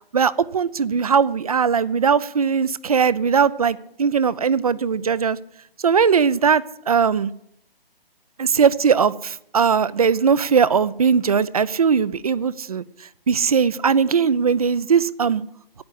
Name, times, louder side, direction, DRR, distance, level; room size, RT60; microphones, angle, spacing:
voice 1, 0.1-5.4 5.8-7.3 8.4-12.8 13.3-15.4, right 6 dB, 40° right, 17 dB, 0.6 m, -19 dB
9.6 x 8.6 x 9.9 m, 0.73 s
figure-of-eight pair, 145°, 30 cm